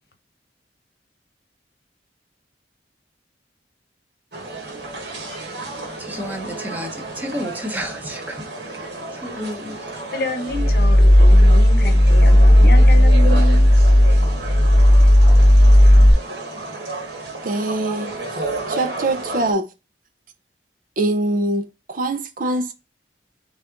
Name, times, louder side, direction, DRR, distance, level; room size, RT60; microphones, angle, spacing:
sound 1, 4.3-19.5, right 2 dB, 70° right, 1.4 m, -32 dB
voice 1, 6.0-10.0, equal, 10° right, 0.8 m, -32 dB
voice 2, 10.1-13.7, left 1 dB, 60° left, 0.9 m, -28 dB
sound 2, 10.5-16.1, equal, 30° left, 0.7 m, -12 dB
voice 3, 17.4-18.1 18.7-19.7 21.0-22.7, right 2 dB, 50° right, 0.5 m, -23 dB
4.0 x 3.5 x 3.8 m
head